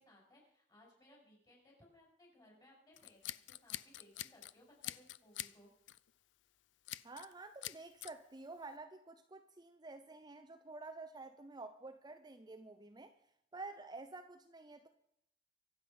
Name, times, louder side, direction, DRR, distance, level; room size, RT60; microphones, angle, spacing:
voice 1, 0.0-5.7, left 1 dB, 20° left, -2 dB, 6.5 m, -64 dB
Scissors, 3.0-4.5 4.8-5.6 5.9-6.1 6.9-7.3 7.6-8.1, left 14 dB, 90° left, 0.5 m, -45 dB
voice 2, 7.0-13.2 13.5-14.9, right 3 dB, 25° right, 7 dB, 0.7 m, -50 dB
24.5 x 8.2 x 5.5 m, 0.75 s
head